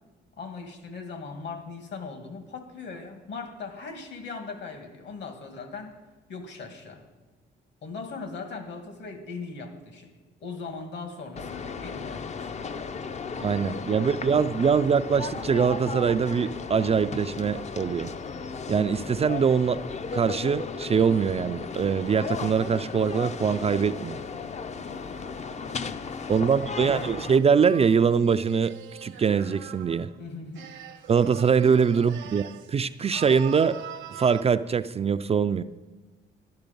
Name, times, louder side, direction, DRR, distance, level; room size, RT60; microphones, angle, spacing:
voice 1, 0.4-6.0 6.3-7.0 7.8-10.1 10.4-12.5 13.9-14.2 26.2-27.1 30.2-30.7 31.9-32.1, left 4 dB, 65° left, 6 dB, 2.2 m, -39 dB
sound 1, 11.4-27.4, left 5 dB, 35° left, 0.6 m, -35 dB
voice 2, 13.4-18.1 18.7-19.8 20.1-24.2 26.3-28.7 29.0-30.1 31.1-33.8 34.1-35.6, right 6 dB, 30° right, 12 dB, 0.4 m, -23 dB
sound 2, 22.5-25.9 26.5-30.2 30.6-32.7 33.0-34.4, right 9 dB, 75° right, 1.0 m, -44 dB
11.5 x 11.5 x 5.3 m, 1.2 s
cardioid pair, 90°, 20 cm